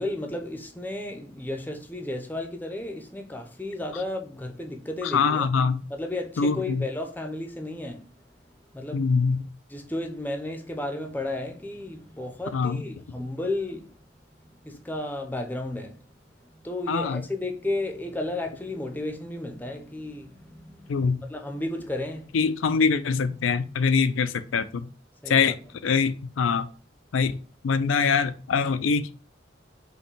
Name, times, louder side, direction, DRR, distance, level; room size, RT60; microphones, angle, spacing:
voice 1, 0.0-5.5 5.9-8.1 8.7-9.1 9.7-13.9 14.6-16.0 16.6-22.4 25.2-25.6, left 2 dB, 10° left, 0.6 m, -33 dB
voice 2, 5.0-5.8 6.4-6.9 8.9-9.5 12.5-12.8 16.9-17.2 20.9-21.2 22.3-24.9 25.3-25.5 25.8-26.7 27.1-27.3 27.6-29.1, left 5 dB, 90° left, 0.4 m, -23 dB
5.4 x 2.2 x 4.3 m
head